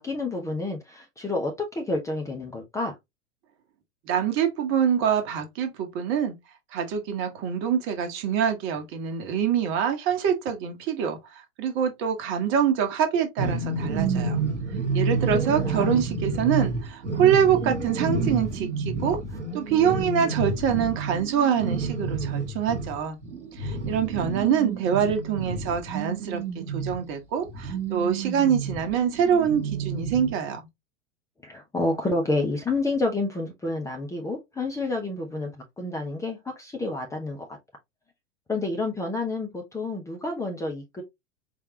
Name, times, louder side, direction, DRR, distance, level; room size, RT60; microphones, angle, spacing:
voice 1, 0.0-2.9 15.6-16.0 31.4-37.5 38.5-41.0, left 2 dB, 10° left, 0.8 m, -29 dB
voice 2, 4.1-6.4 6.7-14.4 14.9-19.2 19.5-23.2 23.6-30.6, right 8 dB, 35° right, 1.2 m, -25 dB
sound 1, 13.4-27.1 27.5-30.3, right 4 dB, 80° right, 1.2 m, -29 dB
4.6 x 3.3 x 2.8 m
figure-of-eight pair, 90°, 35 cm